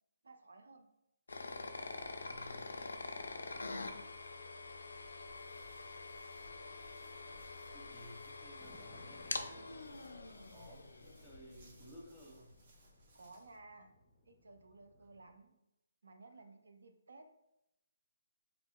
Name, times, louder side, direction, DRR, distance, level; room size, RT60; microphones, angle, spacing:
voice 1, 0.2-0.9 13.1-13.9 14.3-15.5 16.0-17.3, right 3 dB, 80° right, 6 dB, 0.4 m, -57 dB
sound 1, 1.3-12.1, left 3 dB, 85° left, 0.3 m, -46 dB
voice 2, 2.2-2.8 6.4-9.9 10.5-12.6, equal, ahead, -6 dB, 0.8 m, -58 dB
Walk footsteps, 4.8-13.6, right 2 dB, 45° right, 0.7 m, -69 dB
sound 2, 8.6-15.3, left 2 dB, 20° left, 0.4 m, -63 dB
3.5 x 2.3 x 2.3 m, 0.85 s
hypercardioid pair, 155°, 0 cm